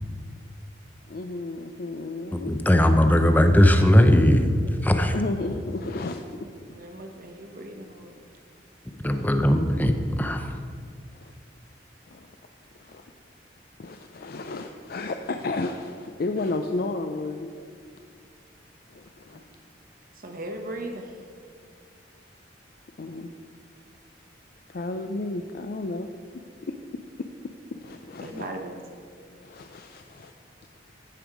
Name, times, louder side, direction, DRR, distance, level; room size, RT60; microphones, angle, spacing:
voice 1, 1.1-2.5 5.1-6.4 11.2-11.3 12.1-12.3 12.8-13.1 13.8-17.5 18.9-19.4 23.0-23.3 24.7-26.1 27.7-28.5 29.4-30.3, left 2 dB, 55° left, 5 dB, 0.4 m, -32 dB
voice 2, 2.3-5.1 9.0-10.6, left 1 dB, 10° left, 6 dB, 0.6 m, -19 dB
voice 3, 6.7-8.2 19.3-19.4 20.1-21.2 28.2-28.8, right 1 dB, 50° right, 3 dB, 1.0 m, -38 dB
15.0 x 5.3 x 4.8 m, 2.1 s
head